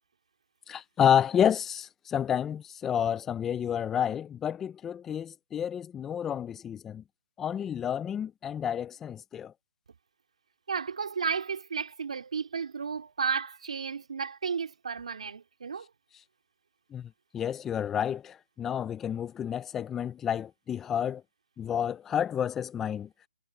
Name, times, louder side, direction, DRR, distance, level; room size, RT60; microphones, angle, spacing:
voice 1, 0.7-7.0 7.4-9.5 16.9-21.2 21.6-23.1, left 9 dB, 5° left, 0.3 m, -30 dB
voice 2, 10.7-15.9, right 6 dB, 55° right, 3.8 m, -33 dB
hypercardioid pair, 170°, 4 cm